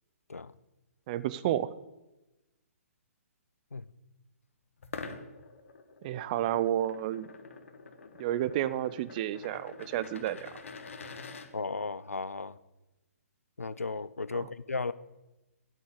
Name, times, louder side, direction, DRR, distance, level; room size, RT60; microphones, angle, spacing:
voice 1, 1.1-1.7 6.0-7.3 8.2-10.5 14.3-14.5, right 12 dB, 35° right, 0.5 m, -31 dB
sound 1, 4.8-11.5, left 4 dB, 60° left, 1.4 m, -46 dB
voice 2, 11.5-12.6 13.6-14.9, left 3 dB, 80° left, 0.6 m, -35 dB
9.5 x 8.9 x 8.3 m
figure-of-eight pair, 125°, 8 cm